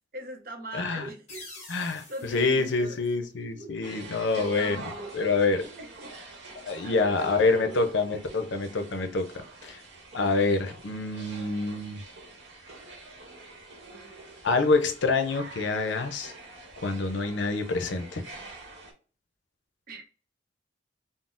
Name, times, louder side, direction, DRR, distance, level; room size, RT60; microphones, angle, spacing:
voice 1, 0.1-1.4 2.1-3.0 3.4-6.1 6.4-7.9 13.9-14.1 19.9-20.1, right 1 dB, 50° right, 0.6 m, -41 dB
voice 2, 0.7-1.1 1.7-4.8 5.1-5.6 6.6-9.3 9.6-9.8 10.1-12.0 14.4-16.3 16.8-18.2, left 3 dB, 80° left, 0.5 m, -26 dB
sound 1, 1.3-3.9, left 2 dB, 40° left, 1.1 m, -48 dB
sound 2, 3.8-18.9, right 2 dB, 75° right, 0.9 m, -46 dB
3.7 x 2.0 x 2.5 m
head